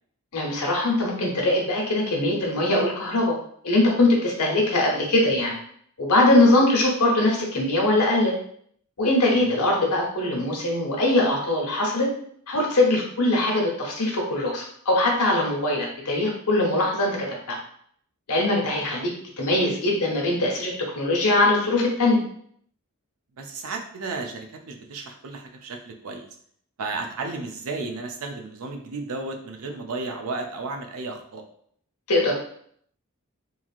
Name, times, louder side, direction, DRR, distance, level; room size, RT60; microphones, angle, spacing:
voice 1, 0.3-3.4 3.6-5.5 6.0-8.3 9.0-12.1 12.5-17.6 18.3-19.1 19.4-22.2 32.1-32.3, left 2 dB, 85° left, -1 dB, 0.9 m, -22 dB
voice 2, 23.4-26.3 26.8-31.4, right 3 dB, 70° right, 3 dB, 0.5 m, -33 dB
3.1 x 2.5 x 2.4 m, 0.64 s
head